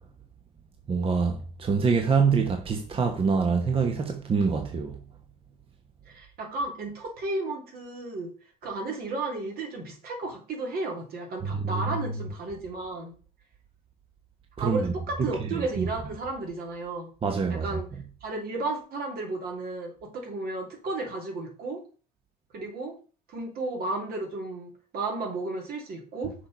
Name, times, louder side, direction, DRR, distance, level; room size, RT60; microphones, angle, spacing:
voice 1, 0.9-5.0 11.4-12.0 14.6-14.9 15.5-15.6 17.2-17.8, right 5 dB, 35° right, 1.0 m, -25 dB
voice 2, 6.1-8.3 8.6-13.1 14.6-17.1 17.5-17.9 18.2-21.8 22.5-23.0 23.3-26.3, right 2 dB, 65° right, 2.9 m, -33 dB
6.5 x 4.7 x 5.4 m
cardioid pair, 110°, 17 cm